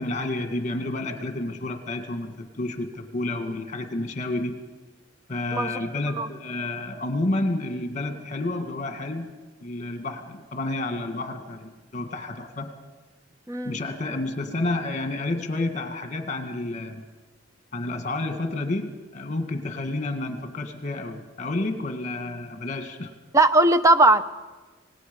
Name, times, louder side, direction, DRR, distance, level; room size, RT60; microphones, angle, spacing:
voice 1, 0.0-4.6 5.3-9.3 9.6-12.7 13.6-17.0 17.7-23.1, left 2 dB, 40° left, 6 dB, 1.9 m, -30 dB
voice 2, 13.5-13.8 23.3-24.2, right 2 dB, 15° right, 10 dB, 0.7 m, -18 dB
26.5 x 19.0 x 5.4 m, 1.3 s
head